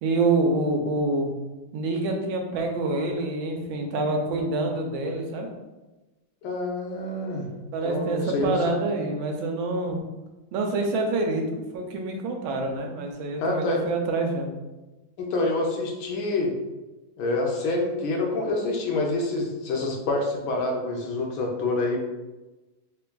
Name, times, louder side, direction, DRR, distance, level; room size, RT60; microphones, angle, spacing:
voice 1, 0.0-1.3 1.7-5.5 7.7-10.0 10.5-11.4 11.7-14.5, right 2 dB, 80° right, 2 dB, 1.4 m, -26 dB
voice 2, 6.4-7.5 7.8-8.6 13.4-13.8 15.2-16.5 17.2-22.0, left 2 dB, 80° left, 1 dB, 1.4 m, -27 dB
3.7 x 3.4 x 2.2 m, 1.1 s
omnidirectional pair, 2.2 m